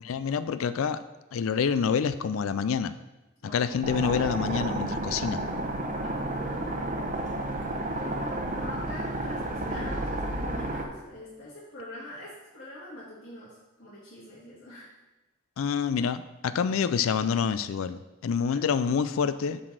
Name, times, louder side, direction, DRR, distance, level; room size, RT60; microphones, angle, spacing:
voice 1, 0.0-1.0 1.3-2.9 3.4-5.4 15.6-19.6, left 6 dB, 80° left, 13 dB, 0.4 m, -27 dB
voice 2, 3.4-3.8 6.0-7.1 7.4-14.9 18.5-18.7, left 1 dB, 60° left, -13 dB, 2.9 m, -44 dB
sound 1, 3.8-10.9, right 1 dB, 40° right, 0.8 m, -31 dB
7.5 x 4.1 x 6.3 m, 1.1 s
head